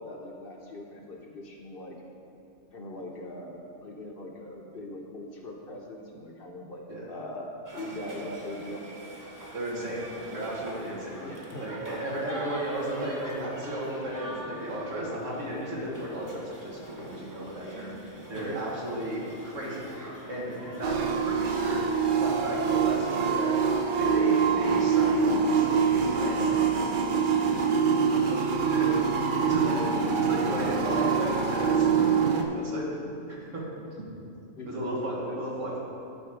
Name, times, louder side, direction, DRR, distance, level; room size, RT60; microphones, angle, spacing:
voice 1, 0.0-2.0 2.7-6.8 7.1-8.9 11.2-11.7 18.3-18.6 28.1-28.7 30.2-30.6 33.4-33.7 34.6-35.4, left 1 dB, 50° left, 0 dB, 1.0 m, -41 dB
sound 1, 7.7-21.9, right 1 dB, 20° right, 0.7 m, -43 dB
voice 2, 9.5-11.2 11.6-19.9 20.3-23.6 23.9-27.6 28.7-28.9 29.3-32.8 33.3-33.6 34.7-35.8, right 1 dB, 75° right, -5 dB, 2.0 m, -34 dB
sound 2, 20.8-32.4, right 6 dB, 50° right, 0.6 m, -25 dB
11.5 x 4.3 x 4.9 m, 2.6 s
omnidirectional pair, 1.3 m